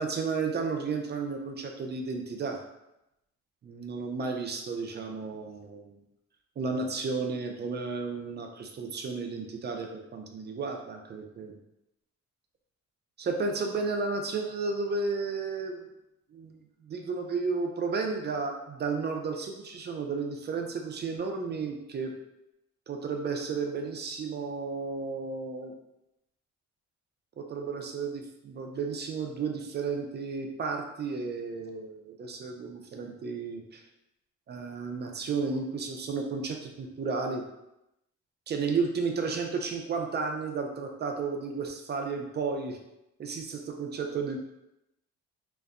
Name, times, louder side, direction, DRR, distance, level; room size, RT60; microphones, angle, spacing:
voice 1, 0.0-2.6 3.6-6.0 6.6-11.5 13.2-15.8 16.3-22.1 22.9-25.7 27.4-33.8 34.5-37.4 38.5-42.8 43.2-44.4, right 4 dB, 35° right, 3 dB, 0.4 m, -33 dB
2.6 x 2.1 x 2.4 m, 0.89 s
cardioid pair, 90°, 30 cm